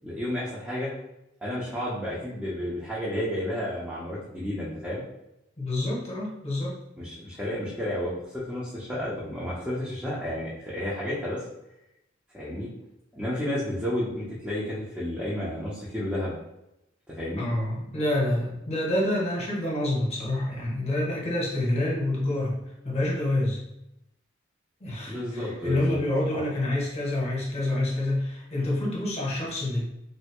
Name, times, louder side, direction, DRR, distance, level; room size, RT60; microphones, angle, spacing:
voice 1, 0.0-0.9 1.4-5.0 7.0-11.4 12.3-12.7 13.1-16.3 17.1-17.5 25.0-26.0 26.3-26.4, left 1 dB, 5° right, -9 dB, 0.7 m, -31 dB
voice 2, 5.6-6.8 17.4-22.6 22.8-23.6 24.8-29.8, left 1 dB, 35° left, -4 dB, 1.0 m, -27 dB
3.2 x 2.7 x 2.9 m, 0.86 s
head